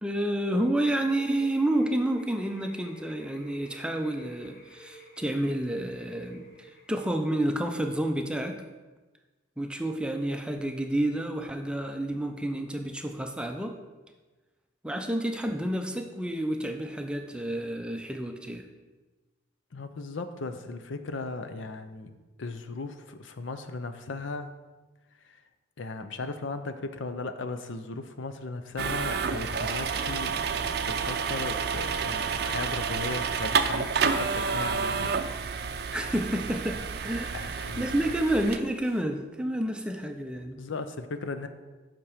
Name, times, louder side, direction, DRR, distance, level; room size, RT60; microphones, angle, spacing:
voice 1, 0.0-8.6 9.6-13.8 14.8-18.6 35.9-40.6, right 1 dB, 5° right, 4 dB, 0.5 m, -30 dB
sound 1, 0.8-7.2, right 1 dB, 45° left, 1.0 m, -50 dB
voice 2, 19.7-22.1 22.4-24.5 25.2-25.4 25.8-35.1 37.3-38.0 40.6-41.5, left 3 dB, 80° left, 9 dB, 0.6 m, -37 dB
sound 2, 28.8-38.6, right 5 dB, 55° right, 0.4 m, -29 dB
7.3 x 6.0 x 5.0 m, 1.2 s
head